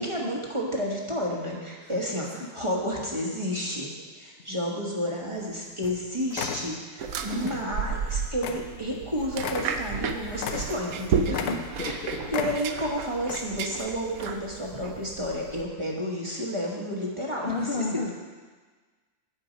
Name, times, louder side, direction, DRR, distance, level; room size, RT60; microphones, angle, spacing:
voice 1, 0.0-11.4 11.8-12.0 12.3-17.8, equal, 20° right, -3 dB, 1.3 m, -31 dB
sound 1, 5.4-5.5 5.8-6.0 6.3-6.7 7.4-7.6 8.0-8.1 8.4-8.7 9.0-9.1 9.4-11.0 11.3-12.0 12.3-12.9 13.2-13.4, left 7 dB, 80° left, 1.2 m, -34 dB
sound 2, 7.0-15.6, right 6 dB, 70° right, 1.1 m, -32 dB
voice 2, 11.3-12.2 17.4-18.1, left 3 dB, 50° left, 0 dB, 0.8 m, -32 dB
8.7 x 8.4 x 5.2 m, 1.4 s
omnidirectional pair, 1.6 m